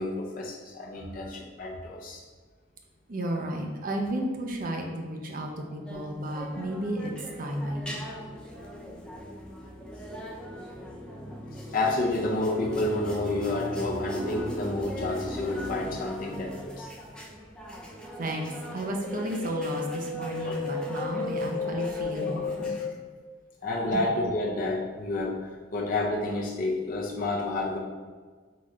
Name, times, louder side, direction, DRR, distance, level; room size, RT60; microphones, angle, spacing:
voice 1, 0.0-2.2 5.6-5.7 10.2-10.3 11.5-16.9 20.4-20.6 22.2-22.4 22.6-22.9 23.6-27.8, left 2 dB, 50° left, -2 dB, 0.5 m, -30 dB
voice 2, 3.1-7.1 7.4-8.1 18.2-22.8 23.9-24.0, right 1 dB, 50° right, 1 dB, 0.6 m, -33 dB
sound 1, 5.8-22.8, equal, 5° left, 0.6 m, -39 dB
sound 2, 19.1-22.9, left 5 dB, 85° left, 1.1 m, -33 dB
3.9 x 3.2 x 3.7 m, 1.5 s
head